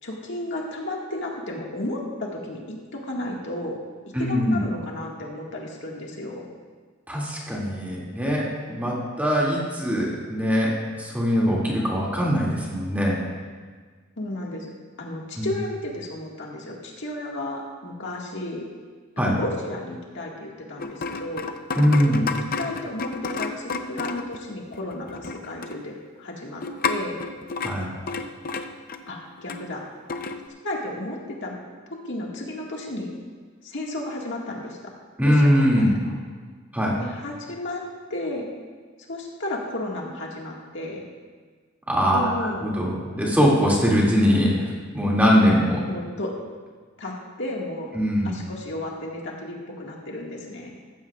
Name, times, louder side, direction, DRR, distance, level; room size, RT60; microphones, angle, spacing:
voice 1, 0.0-3.8 4.2-6.5 14.2-14.7 15.0-18.6 19.2-21.5 22.1-22.2 22.6-27.2 29.1-29.8 30.6-31.6 32.0-33.1 33.6-34.8 35.2-36.2 37.0-37.8 38.1-38.5 39.1-41.1 42.1-42.8 45.8-46.3 47.0-47.9 48.2-50.8, left 1 dB, 65° left, -2 dB, 1.9 m, -33 dB
voice 2, 4.1-4.6 7.1-13.2 15.4-15.5 19.2-19.4 21.8-22.2 27.6-27.9 35.2-35.9 36.7-37.0 41.9-42.3 42.6-44.7 44.9-45.8 47.9-48.4, equal, 10° right, -5 dB, 2.4 m, -21 dB
sound 1, 20.8-24.4 24.7-25.8 26.6-29.6 30.1-30.4, left 4 dB, 45° left, 0.6 m, -31 dB
14.5 x 14.0 x 2.4 m, 1.5 s
head